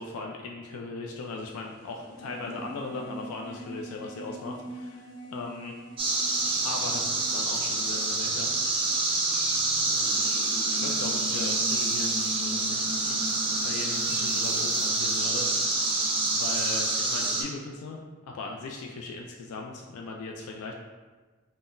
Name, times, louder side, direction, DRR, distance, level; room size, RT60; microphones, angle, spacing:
voice 1, 0.0-5.8 6.6-8.8 9.7-15.8 16.3-20.7, left 3 dB, 90° left, 1 dB, 0.3 m, -39 dB
sound 1, 1.1-17.5, left 1 dB, 45° left, 1.5 m, -43 dB
sound 2, 6.0-17.4, right 2 dB, 25° right, 0.3 m, -27 dB
3.7 x 2.0 x 2.5 m, 1.3 s
head